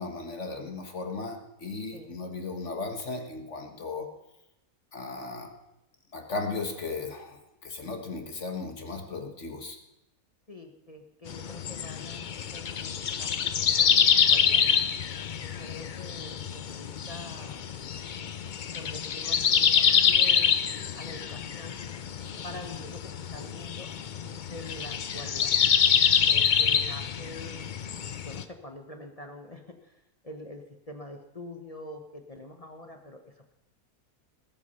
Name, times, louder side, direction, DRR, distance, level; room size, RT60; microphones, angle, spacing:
voice 1, 0.0-4.1 4.9-5.5 6.1-9.8, left 3 dB, 50° left, 4 dB, 1.8 m, -36 dB
voice 2, 10.5-14.7 15.6-17.6 18.7-20.5 20.9-21.8 22.4-23.9 24.5-25.6 26.3-27.5 28.1-33.5, left 1 dB, 25° left, 5 dB, 1.1 m, -45 dB
sound 1, 11.3-28.4, left 7 dB, 75° left, 0.4 m, -26 dB
20.0 x 8.3 x 5.6 m, 0.91 s
omnidirectional pair, 1.7 m